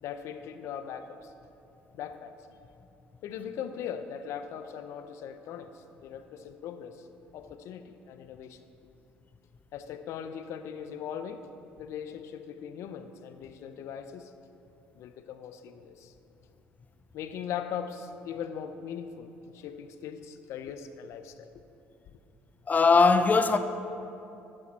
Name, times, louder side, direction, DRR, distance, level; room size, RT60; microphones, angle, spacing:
voice 1, 0.0-1.3 1.9-2.3 3.2-7.1 7.3-8.6 9.7-11.5 11.8-14.3 14.9-16.1 17.1-21.5, left 8 dB, 65° left, 0.7 m, -40 dB
voice 2, 22.7-23.6, left 4 dB, 30° left, 0.6 m, -20 dB
11.0 x 8.8 x 4.2 m
supercardioid pair, 70°, 5 cm